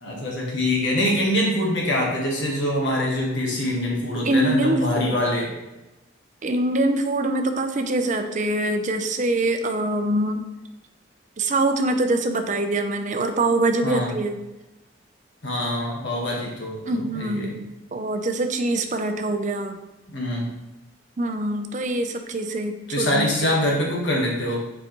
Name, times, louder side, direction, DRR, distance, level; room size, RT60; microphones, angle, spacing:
voice 1, 0.0-5.5 13.8-14.1 15.4-17.5 20.1-20.5 22.9-24.6, left 1 dB, 65° left, -2 dB, 1.4 m, -24 dB
voice 2, 4.2-5.2 6.4-10.4 11.4-14.4 16.9-19.8 21.2-23.3, right 2 dB, 40° right, 6 dB, 0.6 m, -24 dB
7.4 x 4.8 x 3.0 m, 1.0 s
head